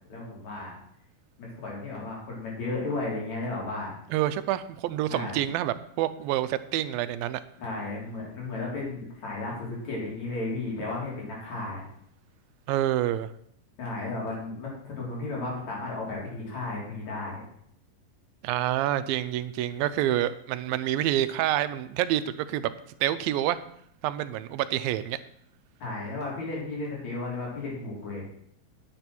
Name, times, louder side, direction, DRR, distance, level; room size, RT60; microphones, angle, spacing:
voice 1, 0.1-0.8 1.4-3.9 5.1-5.3 7.6-11.8 13.8-17.4 25.8-28.2, left 2 dB, 50° left, -4 dB, 5.0 m, -34 dB
voice 2, 4.1-7.4 12.7-13.3 18.4-22.7 23.0-23.6 24.0-25.2, right 13 dB, 90° right, 12 dB, 2.4 m, -27 dB
9.8 x 8.4 x 6.0 m, 0.71 s
omnidirectional pair, 4.1 m